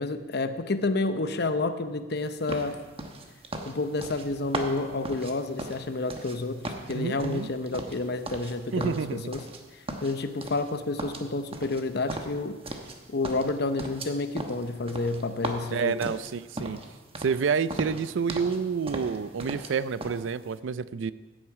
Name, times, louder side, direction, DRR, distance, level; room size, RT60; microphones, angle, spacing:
voice 1, 0.0-2.8 3.7-9.4 10.0-12.6 13.1-16.1, left 3 dB, 60° left, 10 dB, 0.8 m, -30 dB
sound 1, 2.5-6.4 6.6-8.5 8.8-9.6 9.9-10.7 11.0-13.0 13.2-16.9 17.2-17.4 17.7-18.6 18.9-19.7 20.0-20.2, right 2 dB, 30° right, 1.1 m, -37 dB
voice 2, 6.9-7.5 8.7-9.2 15.7-16.8 17.2-21.1, right 6 dB, 80° right, 16 dB, 0.4 m, -29 dB
15.5 x 8.9 x 4.8 m, 1.3 s
head